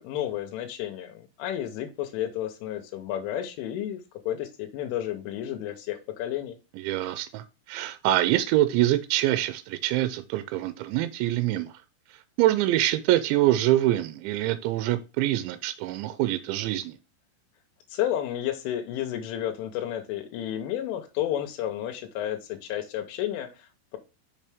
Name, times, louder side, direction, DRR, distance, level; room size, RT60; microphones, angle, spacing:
voice 1, 0.0-4.0 4.3-6.6 17.9-24.0, left 11 dB, 90° left, 3.4 m, -31 dB
voice 2, 6.8-11.7 12.4-17.0, right 14 dB, 80° right, 2.7 m, -25 dB
6.7 x 5.6 x 3.4 m
omnidirectional pair, 5.4 m